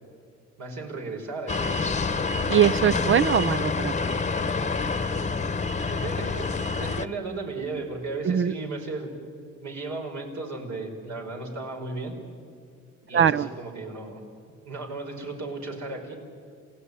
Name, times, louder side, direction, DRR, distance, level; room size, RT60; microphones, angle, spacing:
voice 1, 0.6-1.9 5.9-9.1 9.6-12.1 13.1-14.2 14.7-16.1, right 3 dB, 65° right, 1 dB, 5.3 m, -35 dB
sound 1, 1.5-7.1, left 4 dB, 25° left, 1.0 m, -27 dB
voice 2, 2.5-3.9 8.2-8.5 13.1-13.5, right 9 dB, 45° right, 16 dB, 0.5 m, -21 dB
28.0 x 17.0 x 9.8 m, 2.4 s
cardioid pair, 90°, 30 cm